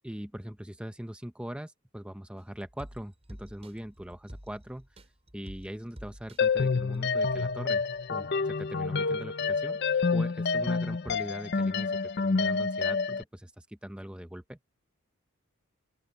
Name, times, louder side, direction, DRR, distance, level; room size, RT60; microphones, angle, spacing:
voice 1, 0.0-5.0 5.3-7.8 8.1-9.8 10.1-14.7, equal, 5° right, 0.7 m, -41 dB
sound 1, 2.4-7.6 7.9-8.0, equal, 30° right, 5.5 m, -50 dB
sound 2, 6.4-13.2, left 4 dB, 50° left, 0.6 m, -28 dB
open air
head